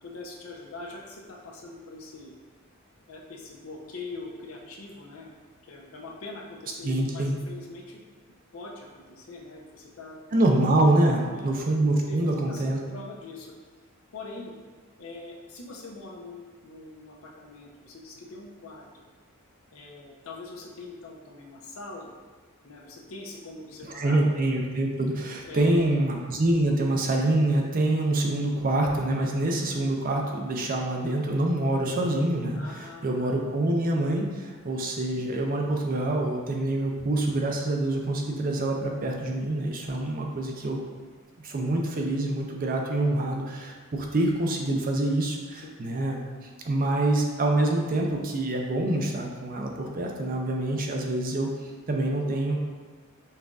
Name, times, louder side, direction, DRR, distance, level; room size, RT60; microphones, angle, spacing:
voice 1, 0.0-2.3 3.1-5.3 5.6-8.0 8.5-10.2 11.0-11.5 11.9-13.5 14.1-14.5 15.0-19.0 19.7-22.1 22.6-24.2 25.4-26.0 32.5-33.3 40.0-40.2 45.6-45.7, left 2 dB, 65° left, -1 dB, 0.6 m, -42 dB
voice 2, 6.8-7.4 10.3-12.8 23.9-40.8 41.4-52.6, right 1 dB, 40° right, 1 dB, 0.5 m, -26 dB
5.4 x 2.6 x 2.3 m, 1.4 s
head